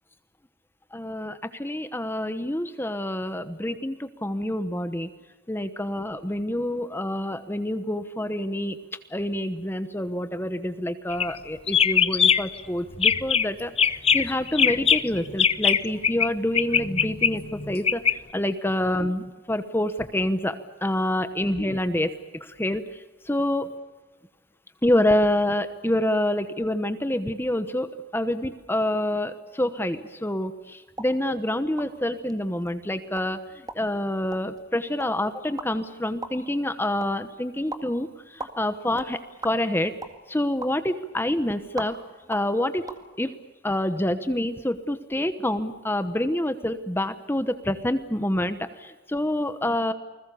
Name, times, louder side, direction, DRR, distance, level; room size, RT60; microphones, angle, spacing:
voice 1, 0.9-5.1 5.5-8.8 9.1-23.7 24.8-33.4 33.7-39.9 40.3-42.0 42.3-42.9 43.2-43.3 43.6-49.9, left 1 dB, 10° left, 10 dB, 1.1 m, -27 dB
sound 1, 11.1-11.4 11.7-12.6 12.9-13.5 13.8-16.3 16.5-18.1, left 7 dB, 30° left, 0.8 m, -21 dB
sound 2, 30.9-43.0, right 2 dB, 20° right, 2.0 m, -43 dB
29.5 x 20.5 x 7.0 m, 1.2 s
head